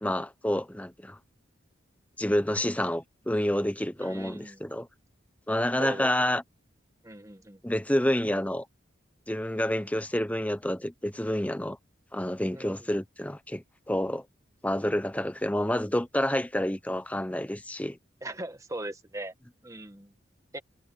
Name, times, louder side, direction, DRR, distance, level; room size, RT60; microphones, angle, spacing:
voice 1, 0.0-1.2 2.2-4.9 5.5-6.4 7.6-8.6 9.3-11.8 12.1-14.2 14.6-18.0, left 1 dB, 10° left, 0.9 m, -28 dB
voice 2, 4.0-4.6 5.8-6.1 7.0-7.6 12.5-12.9 18.2-19.3 19.6-20.1 20.5-20.6, right 1 dB, 15° right, 1.4 m, -39 dB
head